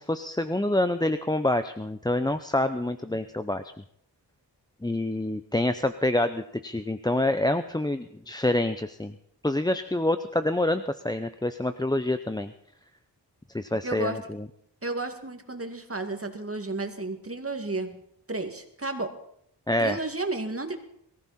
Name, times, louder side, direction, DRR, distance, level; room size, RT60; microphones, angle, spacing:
voice 1, 0.0-3.6 4.8-9.1 9.4-12.5 13.5-14.4 19.7-20.0, left 1 dB, 10° left, 10 dB, 0.6 m, -27 dB
voice 2, 13.8-14.2 14.8-18.0 18.3-19.1 19.8-20.8, right 2 dB, 30° right, 5 dB, 2.2 m, -32 dB
22.5 x 14.5 x 4.3 m, 0.71 s
wide cardioid pair, 75°, 42 cm